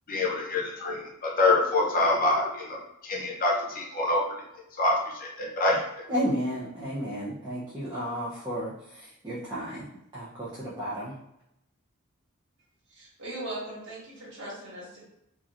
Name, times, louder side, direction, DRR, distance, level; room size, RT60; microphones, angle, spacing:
voice 1, 0.1-4.2 4.8-5.8, left 2 dB, 40° left, -1 dB, 0.7 m, -26 dB
voice 2, 6.1-9.9 10.1-11.1, equal, 20° right, -8 dB, 0.5 m, -32 dB
voice 3, 12.9-15.0, right 1 dB, 55° right, -7 dB, 1.5 m, -39 dB
3.0 x 2.5 x 2.4 m, 0.81 s
head